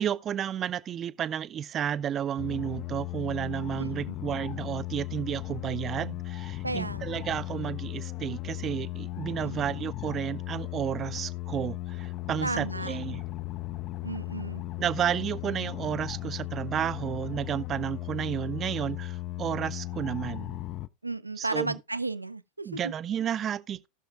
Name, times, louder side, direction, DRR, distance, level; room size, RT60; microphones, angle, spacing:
voice 1, 0.0-13.2 14.8-20.6 21.4-21.7 22.6-23.9, right 9 dB, 30° right, 0.5 m, -32 dB
sound 1, 2.4-20.9, left 18 dB, 40° left, 0.5 m, -36 dB
voice 2, 3.8-4.2 6.6-7.2 9.4-9.6 12.4-13.0 14.0-14.6 21.0-22.9, right 2 dB, 85° right, 0.4 m, -34 dB
18.0 x 6.4 x 2.4 m
figure-of-eight pair, 85°, 0 cm